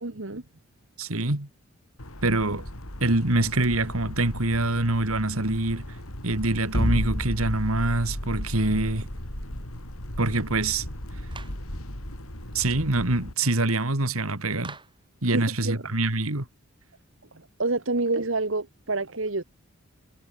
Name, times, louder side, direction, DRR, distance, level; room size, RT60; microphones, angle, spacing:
voice 1, 0.0-0.4 15.3-15.8 17.3-19.4, right 3 dB, 65° right, 1.6 m, -28 dB
voice 2, 1.0-1.5 2.2-2.6 3.0-5.8 6.2-9.1 10.2-10.8 12.5-14.8 15.2-16.4, right 2 dB, 85° right, 2.7 m, -25 dB
sound 1, 2.0-13.3, equal, 90° left, 7.3 m, -38 dB
sound 2, 6.7-12.9, left 1 dB, 45° left, 3.1 m, -32 dB
Clapping, 11.3-11.7 14.6-15.1, right 4 dB, 25° right, 5.9 m, -43 dB
head